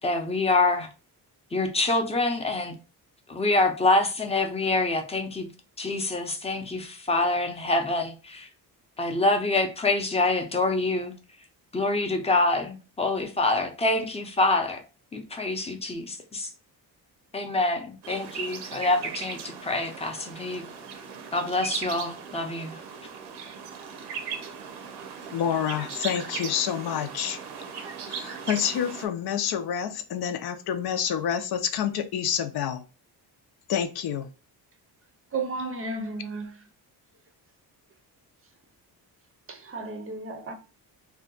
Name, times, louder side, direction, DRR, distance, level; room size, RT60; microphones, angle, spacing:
voice 1, 0.0-0.9 1.5-2.8 3.3-5.5 5.8-8.5 9.0-11.1 11.7-14.8 15.1-16.5 17.3-20.6 21.3-22.8, left 2 dB, 15° left, 0.5 m, -26 dB
sound 1, 18.0-29.1, right 6 dB, 85° right, 0.7 m, -38 dB
voice 2, 25.3-27.4 28.1-32.8 33.7-34.3, left 9 dB, 70° left, 0.5 m, -28 dB
voice 3, 35.3-36.6 39.5-40.5, right 3 dB, 35° right, 0.5 m, -33 dB
2.7 x 2.2 x 3.8 m
cardioid pair, 135°, 39 cm